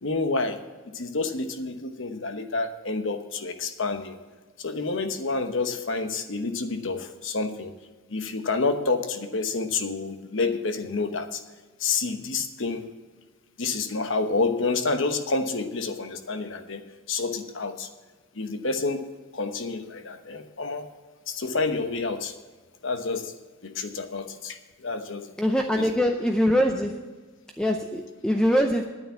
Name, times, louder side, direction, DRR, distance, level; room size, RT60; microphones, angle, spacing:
voice 1, 0.0-0.6 0.9-4.1 4.6-7.7 8.1-11.4 11.8-12.9 13.6-16.8 17.1-17.9 18.3-19.0 19.3-20.9 21.3-22.3 22.8-23.3 23.6-25.3 25.8-25.9, left 3 dB, 70° left, 8 dB, 1.0 m, -28 dB
voice 2, 25.4-27.0 27.6-28.8, equal, 5° left, 3 dB, 0.5 m, -23 dB
9.6 x 9.3 x 7.4 m, 1.3 s
head